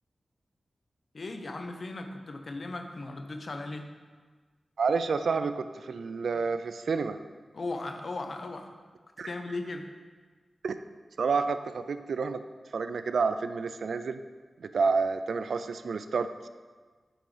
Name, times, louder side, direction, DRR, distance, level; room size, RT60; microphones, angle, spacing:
voice 1, 1.1-3.9 7.5-8.7 9.3-9.9, left 2 dB, 50° left, 5 dB, 0.6 m, -37 dB
voice 2, 4.8-7.2 9.2-9.3 10.6-10.7 11.2-12.4 12.7-14.2 14.6-16.5, right 4 dB, 80° right, 11 dB, 0.3 m, -29 dB
5.9 x 5.1 x 4.9 m, 1.4 s
wide cardioid pair, 115°, 0 cm